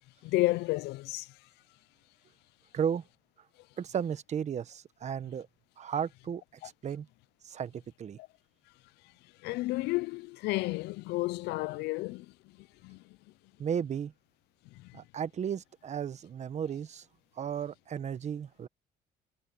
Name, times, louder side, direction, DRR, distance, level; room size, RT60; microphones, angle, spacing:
voice 1, 0.2-1.3 6.6-6.7 9.4-12.3 12.6-13.2 14.7-15.0, left 20 dB, 85° left, 0.4 m, -32 dB
voice 2, 2.7-3.0 3.8-5.5 5.8-6.4 6.8-7.1 7.5-8.2 13.6-14.1 14.9-17.0 17.4-18.7, right 8 dB, 40° right, 1.1 m, -34 dB
cardioid pair, 110°, 17 cm